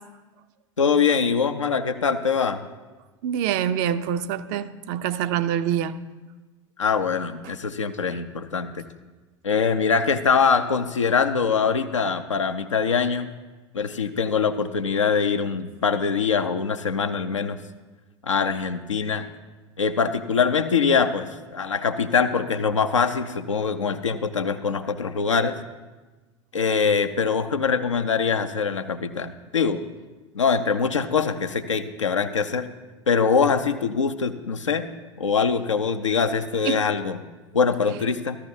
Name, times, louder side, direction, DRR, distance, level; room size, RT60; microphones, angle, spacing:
voice 1, 0.8-2.6 6.8-8.8 9.4-13.3 13.7-17.6 18.2-19.3 19.8-25.6 26.5-29.8 30.3-32.7 33.1-34.9 35.2-37.2 37.5-38.4, left 5 dB, 85° left, 8 dB, 0.6 m, -23 dB
voice 2, 3.2-6.0 36.6-36.9, right 9 dB, 50° right, 12 dB, 0.5 m, -25 dB
13.5 x 13.0 x 2.7 m, 1.2 s
figure-of-eight pair, 75°, 16 cm